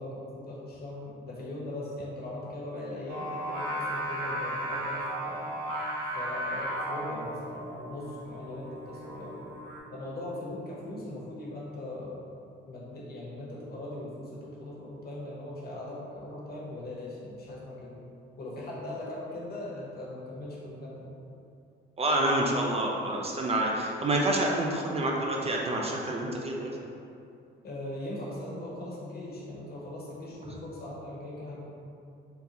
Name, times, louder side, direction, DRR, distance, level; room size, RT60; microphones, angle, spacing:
voice 1, 0.0-5.5 6.1-9.5 9.9-12.3 12.7-17.9 18.4-21.2 27.6-31.6, left 1 dB, 50° left, -5 dB, 0.9 m, -40 dB
Singing, 3.1-9.8, equal, 75° right, 0.7 m, -35 dB
voice 2, 22.0-26.8, right 1 dB, 30° right, -1 dB, 0.4 m, -28 dB
3.8 x 2.2 x 2.8 m, 2.6 s
cardioid pair, 90°, 20 cm